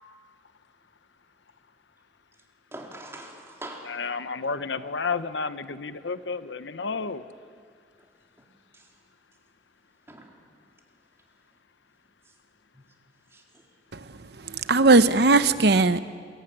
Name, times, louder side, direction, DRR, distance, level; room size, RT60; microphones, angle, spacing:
voice 1, 2.7-3.9 8.0-8.1 8.7-8.9 10.1-10.3 12.3-12.4 13.3-13.6, right 1 dB, 15° right, 3.7 m, -43 dB
voice 2, 3.8-7.2, left 4 dB, 85° left, 1.0 m, -31 dB
voice 3, 14.5-16.0, right 3 dB, 60° right, 0.9 m, -18 dB
22.5 x 21.5 x 10.0 m
head